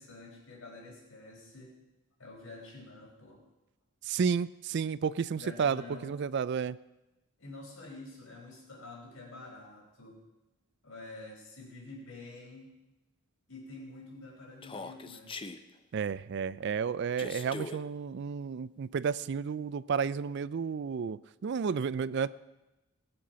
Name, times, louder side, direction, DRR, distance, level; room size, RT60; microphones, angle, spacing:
voice 1, 0.0-1.8 2.2-3.4 5.3-6.2 7.4-10.2 10.8-12.7 13.5-15.3, left 2 dB, 70° left, -1 dB, 4.6 m, -48 dB
voice 2, 4.0-6.8 15.9-22.3, right 6 dB, 55° right, 18 dB, 0.3 m, -32 dB
Human voice, 14.6-15.6 17.2-17.8, left 3 dB, 25° left, 0.6 m, -41 dB
19.0 x 7.7 x 5.7 m, 1.0 s
head